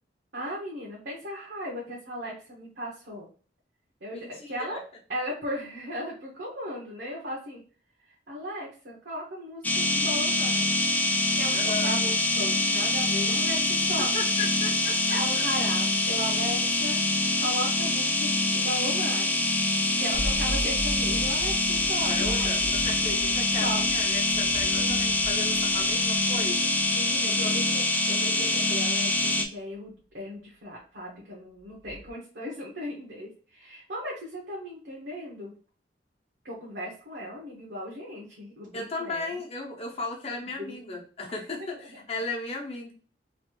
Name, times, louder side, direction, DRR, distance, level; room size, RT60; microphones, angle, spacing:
voice 1, 0.3-3.3 4.0-4.8 5.1-7.6 8.3-10.8 11.3-11.6 11.8-14.1 15.1-17.0 17.4-19.4 20.0-22.5 23.6-23.8 24.7-24.9 26.9-35.5 36.4-39.4 40.3-41.0 41.6-42.0, equal, 75° right, -4 dB, 1.1 m, -37 dB
voice 2, 4.1-4.8 11.5-11.9 14.1-15.4 22.1-26.7 27.4-27.6 38.7-42.9, left 3 dB, 35° left, 0 dB, 0.9 m, -36 dB
sound 1, 9.6-29.5, left 2 dB, 10° left, 0.4 m, -25 dB
sound 2, 20.1-26.9 28.9-29.0 31.8-32.1, equal, 50° right, 0.7 m, -38 dB
3.1 x 2.6 x 3.0 m, 0.39 s
head